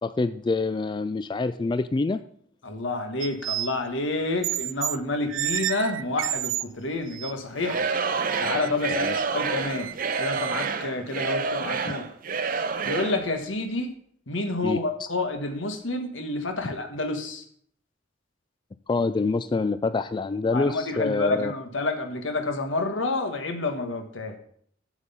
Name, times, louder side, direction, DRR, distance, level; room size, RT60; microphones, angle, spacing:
voice 1, 0.0-2.2 8.9-9.2 14.6-14.8 18.9-21.5, left 3 dB, 25° left, 12 dB, 0.3 m, -26 dB
voice 2, 2.6-7.8 8.4-9.9 10.2-12.0 12.8-13.9 14.3-17.4 20.5-24.4, left 2 dB, 90° left, 6 dB, 1.5 m, -29 dB
sound 1, 3.2-3.8 4.4-5.0 5.3-6.6 7.1-7.3 7.8-7.9 8.4-10.7, right 14 dB, 90° right, 0.4 m, -31 dB
Singing / Crowd, 7.6-13.3, right 5 dB, 50° right, 0.7 m, -28 dB
7.9 x 7.6 x 5.6 m, 0.62 s
head